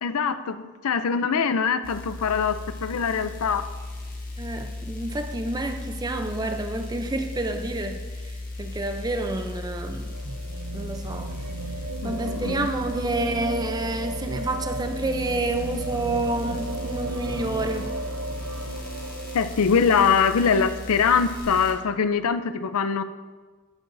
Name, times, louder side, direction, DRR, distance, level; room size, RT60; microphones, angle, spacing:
voice 1, 0.0-3.6 12.0-12.7 19.3-23.0, left 6 dB, 80° left, 11 dB, 0.5 m, -23 dB
sound 1, 1.8-21.7, left 2 dB, 40° left, 1.7 m, -36 dB
voice 2, 4.4-10.1 10.7-11.3 12.0-17.9, right 2 dB, 15° right, 7 dB, 0.5 m, -29 dB
sound 2, 9.3-20.2 21.4-21.5, right 3 dB, 75° right, 0.6 m, -35 dB
14.5 x 8.7 x 2.6 m, 1.4 s
head